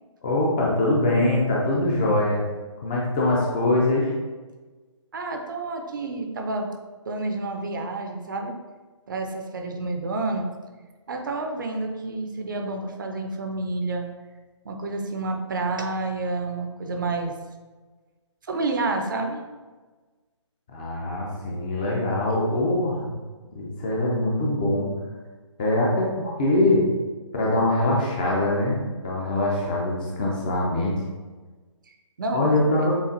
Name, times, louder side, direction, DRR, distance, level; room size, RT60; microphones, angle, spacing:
voice 1, 0.2-2.5 2.8-4.1 20.7-23.1 23.5-24.9 25.6-26.9 27.3-30.9 32.3-32.9, left 1 dB, 15° left, -3 dB, 0.4 m, -23 dB
voice 2, 5.1-6.7 7.1-8.6 9.1-10.5 11.1-14.1 14.6-17.3 18.5-19.4 31.9-32.4 32.8-32.9, right 2 dB, 40° right, 4 dB, 0.5 m, -29 dB
6.9 x 2.4 x 2.5 m, 1.3 s
figure-of-eight pair, 145°, 16 cm